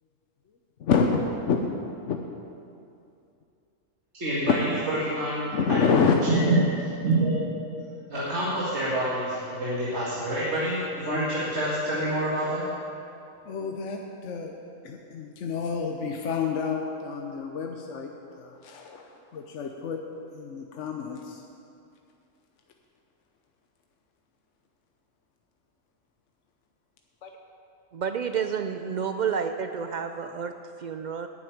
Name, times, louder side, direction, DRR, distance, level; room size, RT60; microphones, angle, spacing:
voice 1, 0.8-1.6 2.1-2.2 5.5-6.1 13.5-14.6 14.8-18.1 18.4-20.0 20.3-21.4 27.2-27.3, left 5 dB, 70° left, 2 dB, 1.1 m, -28 dB
voice 2, 4.1-7.6 8.1-12.6, right 1 dB, 60° right, -8 dB, 2.1 m, -27 dB
voice 3, 27.9-31.3, right 7 dB, 90° right, 7 dB, 0.4 m, -30 dB
9.4 x 7.9 x 9.2 m, 2.6 s
omnidirectional pair, 1.3 m